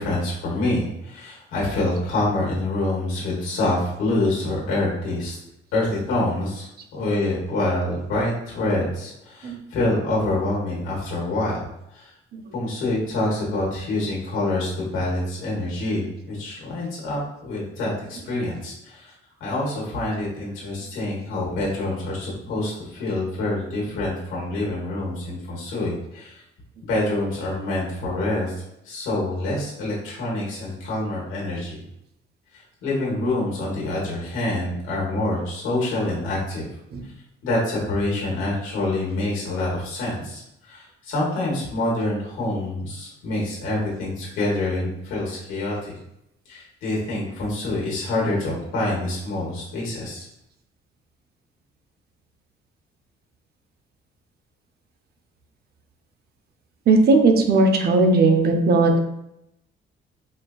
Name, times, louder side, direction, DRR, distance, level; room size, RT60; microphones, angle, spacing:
voice 1, 0.0-5.4 5.7-11.6 11.9-12.1 12.5-19.1 19.4-26.4 26.8-31.8 32.5-36.7 37.4-46.0 46.5-50.2, left 2 dB, 90° left, -4 dB, 1.2 m, -26 dB
voice 2, 56.9-59.0, right 3 dB, 55° right, 5 dB, 0.6 m, -17 dB
4.3 x 2.3 x 2.4 m, 0.81 s
cardioid pair, 90°, 20 cm